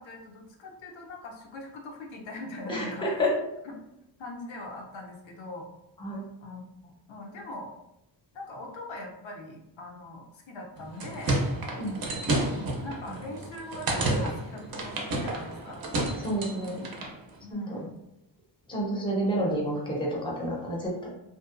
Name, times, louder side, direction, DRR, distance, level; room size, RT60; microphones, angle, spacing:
voice 1, 0.0-3.3 3.6-3.8 4.2-5.7 6.4-7.7 8.3-11.4 12.5-15.8 17.4-17.9, left 2 dB, 80° left, 0 dB, 0.6 m, -41 dB
voice 2, 2.7-3.3 6.0-6.2 11.8-12.2 13.1-13.2 16.2-16.8 17.5-17.8 18.7-21.1, equal, 10° left, -3 dB, 0.5 m, -29 dB
sound 1, 10.8-17.2, right 2 dB, 55° right, 0.5 m, -31 dB
2.6 x 2.1 x 2.4 m, 0.84 s
wide cardioid pair, 155°, 45 cm